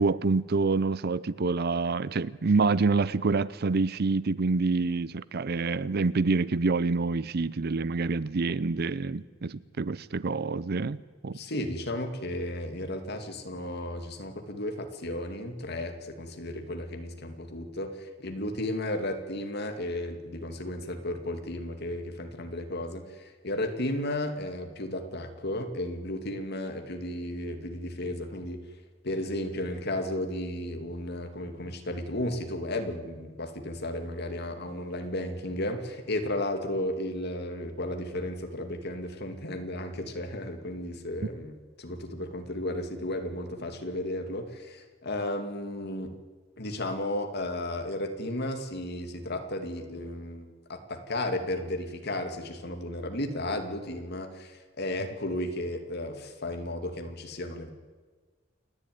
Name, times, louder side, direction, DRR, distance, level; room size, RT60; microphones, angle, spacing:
voice 1, 0.0-11.4, right 3 dB, 55° right, 0.6 m, -27 dB
voice 2, 11.3-28.6 29.0-46.1 46.6-57.7, left 1 dB, 55° left, 2.4 m, -34 dB
28.5 x 11.0 x 9.5 m
head